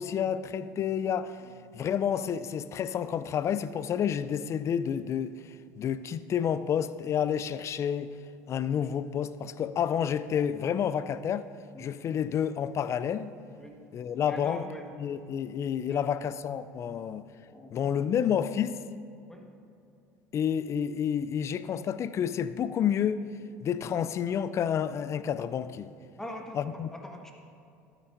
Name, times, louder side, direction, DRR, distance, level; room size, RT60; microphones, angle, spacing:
voice 1, 0.0-1.4 1.7-8.1 8.5-11.5 11.8-13.3 13.9-14.6 15.0-17.2 17.7-18.8 20.3-23.2 23.6-25.9 26.5-26.9, left 8 dB, 40° left, 0.4 m, -29 dB
voice 2, 14.3-14.9 15.9-16.1 17.5-17.7 19.3-19.4 26.2-26.6 26.9-27.3, equal, 5° left, 1.4 m, -42 dB
12.5 x 9.0 x 2.6 m
hypercardioid pair, 75°, 7 cm